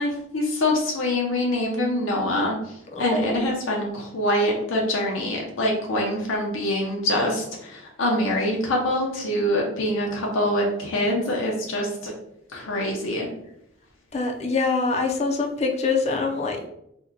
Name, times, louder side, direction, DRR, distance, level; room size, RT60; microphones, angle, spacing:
voice 1, 0.0-2.6 3.0-12.1 12.5-13.3, left 1 dB, 85° left, -1 dB, 0.6 m, -25 dB
voice 2, 2.9-3.4 14.1-16.7, left 3 dB, 35° left, 3 dB, 0.4 m, -24 dB
2.8 x 2.1 x 3.6 m, 0.77 s
head